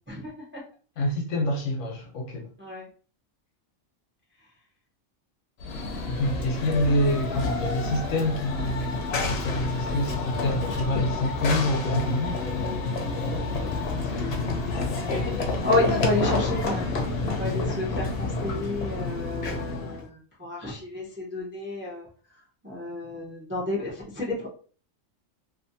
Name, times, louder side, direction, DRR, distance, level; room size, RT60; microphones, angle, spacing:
voice 1, 0.1-0.6 2.6-2.9 6.8-6.9 14.2-14.7 15.6-17.1 17.4-22.1 22.6-24.5, left 2 dB, 15° right, -4 dB, 0.4 m, -30 dB
voice 2, 1.0-2.5 6.1-12.9 14.0-14.6 14.9-15.2 17.2-17.6, left 1 dB, 90° left, 1 dB, 1.1 m, -28 dB
Run / Train, 5.6-20.0, left 3 dB, 65° left, 0.8 m, -29 dB
2.5 x 2.5 x 2.6 m, 0.41 s
omnidirectional pair, 1.3 m